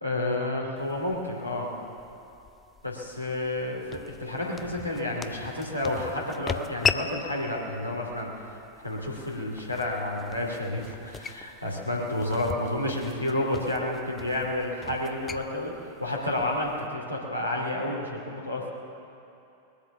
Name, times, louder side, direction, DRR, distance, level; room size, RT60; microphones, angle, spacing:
voice 1, 0.0-1.7 2.8-8.6 8.8-15.7 16.0-18.7, left 1 dB, 90° right, -2 dB, 2.7 m, -30 dB
sound 1, 0.8-16.9, left 6 dB, 20° left, 0.5 m, -38 dB
20.5 x 8.4 x 7.1 m, 2.9 s
figure-of-eight pair, 90°, 0 cm